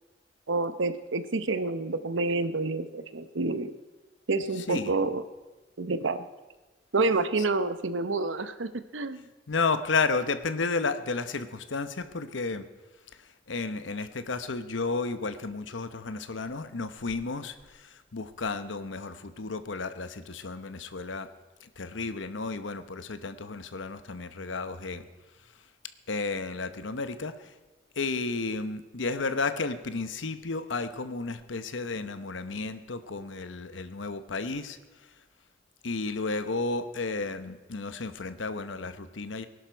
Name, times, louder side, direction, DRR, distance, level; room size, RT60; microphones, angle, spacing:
voice 1, 0.5-3.7 4.3-5.2 5.8-6.2 6.9-9.3, right 3 dB, 90° right, 12 dB, 0.8 m, -28 dB
voice 2, 4.6-4.9 9.5-12.6 13.2-21.3 21.6-25.1 26.1-27.5 28.0-34.8 35.8-39.5, left 4 dB, 90° left, 11 dB, 0.9 m, -32 dB
20.0 x 11.5 x 4.6 m, 1.2 s
head